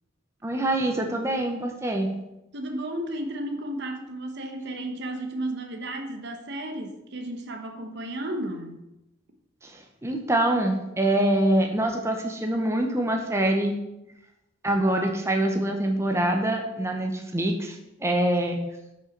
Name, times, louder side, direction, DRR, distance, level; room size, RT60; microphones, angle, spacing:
voice 1, 0.4-2.1 9.6-13.7 14.6-18.6, right 1 dB, 15° right, 2 dB, 0.8 m, -25 dB
voice 2, 2.5-8.8, right 1 dB, 60° right, 5 dB, 1.0 m, -33 dB
5.7 x 5.5 x 5.3 m, 0.90 s
head